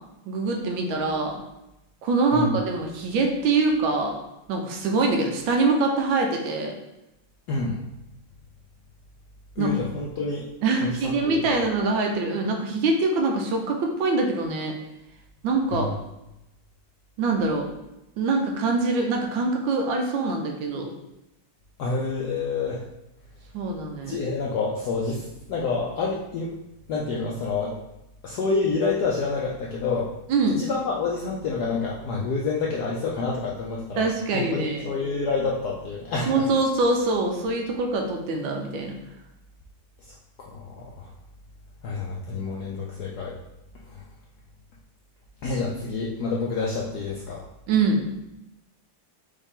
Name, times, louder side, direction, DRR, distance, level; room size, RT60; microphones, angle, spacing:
voice 1, 0.3-1.4 2.0-4.2 4.5-6.7 9.6-9.8 10.6-14.8 15.4-15.9 17.2-17.7 18.2-20.9 23.5-24.2 30.3-30.6 34.0-34.9 36.3-38.9 47.7-48.0, right 3 dB, 75° right, 2 dB, 1.3 m, -24 dB
voice 2, 7.5-7.8 9.6-10.5 10.8-11.6 15.7-16.0 21.8-22.8 24.0-26.5 26.9-27.7 28.2-30.1 30.5-34.1 34.3-36.4 40.0-41.1 41.8-43.3 43.8-44.0 45.4-47.4, left 4 dB, 75° left, -3 dB, 0.9 m, -28 dB
5.0 x 2.7 x 3.6 m, 0.91 s
omnidirectional pair, 2.3 m